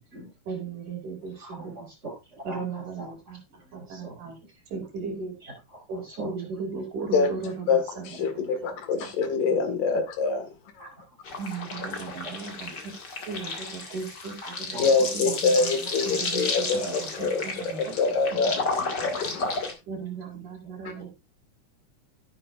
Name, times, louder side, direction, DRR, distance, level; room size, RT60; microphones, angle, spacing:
voice 1, 0.5-1.7 2.5-3.4 3.7-4.4 4.7-5.4 5.9-7.7 8.0-8.3 8.6-8.7 9.0-9.1 9.5-9.8 11.4-12.9 13.3-14.4 15.1-15.7 16.1-16.7 17.0-17.9 19.0-19.1 19.9-21.1, right 5 dB, 75° right, 4.0 m, -36 dB
voice 2, 1.3-2.8 3.8-4.2 5.4-5.5 5.9-6.3 6.6-6.8 10.8-10.9 14.4-14.8, right 1 dB, 20° right, 5.5 m, -41 dB
voice 3, 7.7-10.5 14.8-19.7, left 4 dB, 90° left, 3.4 m, -25 dB
sound 1, 11.2-19.7, left 3 dB, 35° left, 2.3 m, -33 dB
12.0 x 10.5 x 2.5 m
omnidirectional pair, 3.6 m